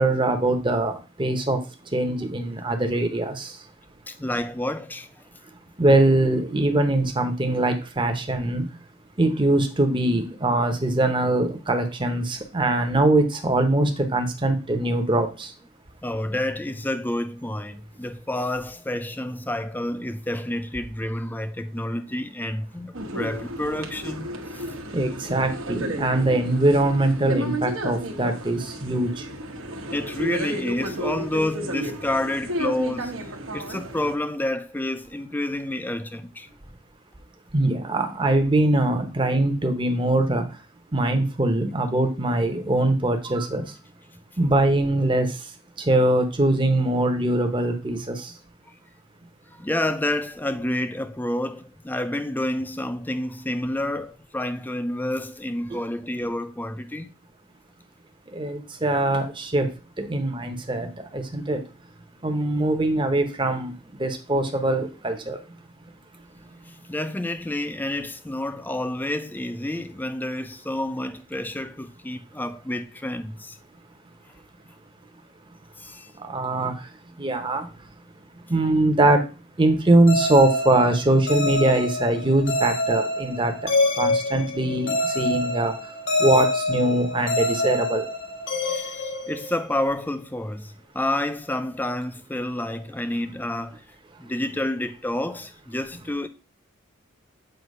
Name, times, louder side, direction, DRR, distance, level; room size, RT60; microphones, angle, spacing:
voice 1, 0.0-1.6 1.9-3.6 5.8-8.7 9.2-15.5 24.9-29.2 37.5-40.4 40.9-43.6 44.4-45.3 45.8-48.3 55.7-55.8 58.3-59.7 60.0-61.6 62.2-63.7 64.0-65.4 76.2-76.7 77.2-77.7 78.5-79.2 79.6-83.7 84.0-85.7 86.2-88.0, right 2 dB, 25° right, 0.9 m, -22 dB
voice 2, 4.1-5.2 16.0-24.7 29.9-36.6 49.5-57.1 66.7-73.6 75.8-76.1 88.6-93.8 94.2-96.3, left 1 dB, 10° left, 0.4 m, -29 dB
sound 1, 22.9-34.1, equal, 75° right, 1.2 m, -32 dB
sound 2, 80.1-89.9, left 1 dB, 60° left, 1.2 m, -26 dB
7.8 x 2.8 x 5.3 m
head